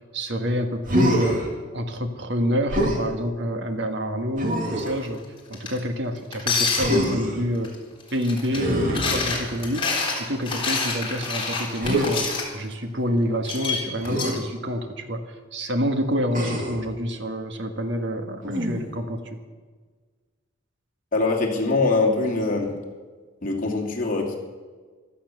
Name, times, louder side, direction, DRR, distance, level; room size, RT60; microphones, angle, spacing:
voice 1, 0.1-1.5 1.7-5.2 5.5-7.7 8.1-12.3 12.5-19.4, equal, 65° right, 6 dB, 1.6 m, -27 dB
Human voice, 0.8-1.5 2.7-3.0 4.4-5.0 6.8-7.4 8.5-9.8 11.8-12.1 14.0-14.4 16.3-16.8 18.4-19.0, equal, 45° right, 2.8 m, -25 dB
sound 1, 4.8-5.1 5.5-5.8 6.3-7.1 7.6-8.6 8.9-12.4 13.4-14.4, left 4 dB, 25° left, 3.9 m, -27 dB
voice 2, 21.1-22.7 23.4-24.4, left 3 dB, 45° left, -1 dB, 2.8 m, -23 dB
15.5 x 13.0 x 6.7 m, 1.5 s
head